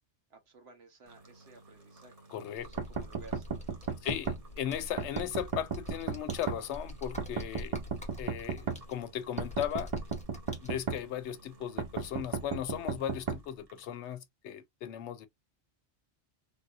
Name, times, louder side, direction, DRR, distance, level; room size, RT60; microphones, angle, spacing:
voice 1, 0.3-2.2 2.6-3.6 3.9-4.0, right 4 dB, 70° right, 1.3 m, -55 dB
sound 1, 1.0-14.1, right 2 dB, 35° right, 1.0 m, -57 dB
voice 2, 2.3-2.7 4.0-7.7 8.2-9.9 10.6-15.3, left 10 dB, 85° left, 0.9 m, -37 dB
Computer keyboard, 2.6-10.7, left 1 dB, 10° left, 0.6 m, -46 dB
sound 2, 2.8-4.4 5.0-6.6 7.2-8.8 9.4-11.0 11.8-13.4, right 5 dB, 55° right, 0.3 m, -34 dB
3.6 x 2.7 x 2.3 m
omnidirectional pair, 1.1 m